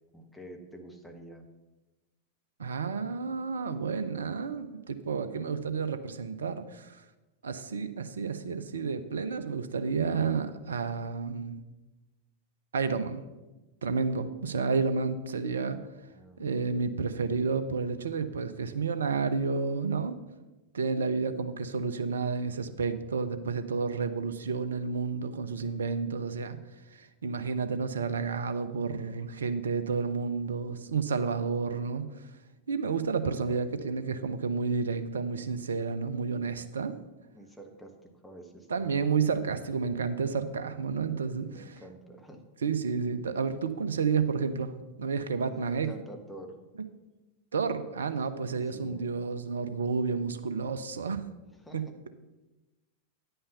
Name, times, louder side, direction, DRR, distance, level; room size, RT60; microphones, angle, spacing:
voice 1, 0.1-1.4 16.0-16.7 37.3-37.9 38.2-39.1 41.3-42.4 45.4-46.6 48.7-49.1 51.6-51.9, right 1 dB, 5° left, 3 dB, 1.4 m, -48 dB
voice 2, 2.6-7.0 7.4-11.6 12.7-13.2 13.8-15.8 16.4-20.1 20.7-26.6 26.9-32.1 32.7-36.9 38.7-41.8 42.6-44.7 45.0-45.9 47.5-51.2 51.7-51.8, right 5 dB, 70° right, 11 dB, 0.7 m, -30 dB
9.7 x 5.6 x 6.8 m, 1.1 s
figure-of-eight pair, 90°, 0 cm